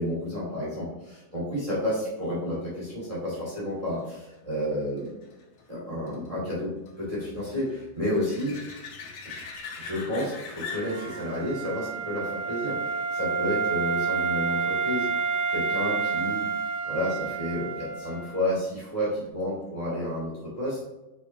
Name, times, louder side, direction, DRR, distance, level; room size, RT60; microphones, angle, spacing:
voice 1, 0.0-5.1 5.7-8.8 9.2-9.4 9.8-16.5 16.8-20.8, left 1 dB, 15° right, -7 dB, 2.6 m, -31 dB
sound 1, 2.5-13.8 19.4-19.5, left 5 dB, 85° left, 2.0 m, -44 dB
Wind instrument woodwind instrument, 10.6-18.4, right 5 dB, 65° right, 0.7 m, -29 dB
7.7 x 6.6 x 2.9 m, 1.0 s
omnidirectional pair, 2.2 m